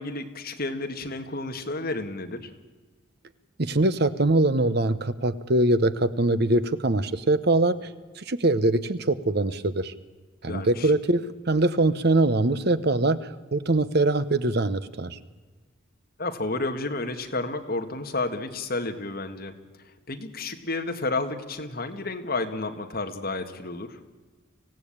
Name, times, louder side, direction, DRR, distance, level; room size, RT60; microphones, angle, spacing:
voice 1, 0.0-2.5 10.5-10.9 16.2-19.6 20.1-24.0, left 2 dB, 50° left, 5 dB, 1.9 m, -31 dB
voice 2, 3.6-7.7 8.2-9.9 10.4-15.2, right 2 dB, 55° right, 13 dB, 1.0 m, -23 dB
25.5 x 16.5 x 8.8 m, 1.3 s
head